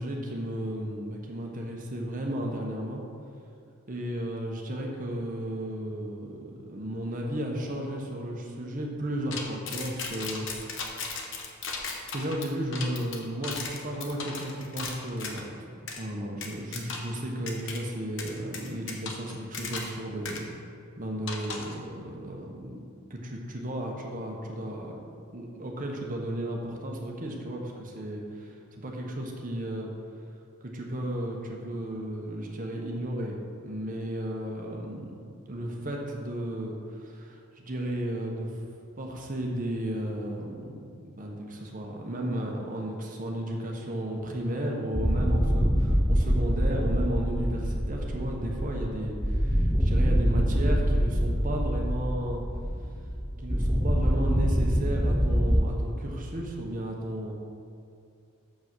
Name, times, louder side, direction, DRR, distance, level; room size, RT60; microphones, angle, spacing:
voice 1, 0.0-3.0 3.9-11.0 12.1-15.6 16.0-20.5 21.0-22.8 23.1-25.0 25.3-29.9 30.6-33.4 33.6-35.1 35.5-38.6 39.0-40.7 41.2-52.4 53.4-57.3, right 1 dB, 40° right, 0 dB, 1.1 m, -34 dB
sound 1, 9.3-15.4 15.9-16.0 16.4-17.2 17.5-17.8 18.2-20.0 20.2-20.4 21.3-21.8, left 4 dB, 65° left, 1.0 m, -36 dB
sound 2, 44.9-55.6, equal, ahead, 0.5 m, -25 dB
6.9 x 5.3 x 6.1 m, 2.5 s
head